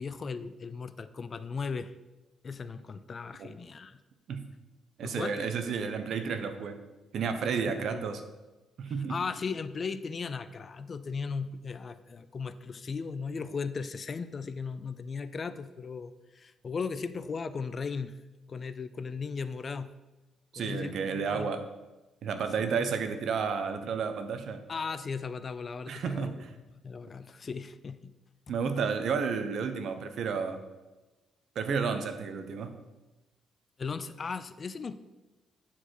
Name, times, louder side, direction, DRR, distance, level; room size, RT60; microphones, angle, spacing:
voice 1, 0.0-1.9 2.4-4.0 5.0-5.5 7.8-8.0 8.9-18.2 18.5-19.9 20.6-21.5 22.6-22.9 24.7-26.4 26.7-28.1 28.5-28.9 33.8-34.9, left 5 dB, 40° left, 13 dB, 0.4 m, -37 dB
voice 2, 5.0-6.8 7.1-8.2 8.8-9.2 20.5-21.6 22.2-24.6 25.9-26.5 28.5-30.6 31.6-32.7, right 6 dB, 65° right, 8 dB, 0.8 m, -31 dB
8.8 x 4.8 x 4.4 m, 1.1 s
cardioid pair, 90°, 0 cm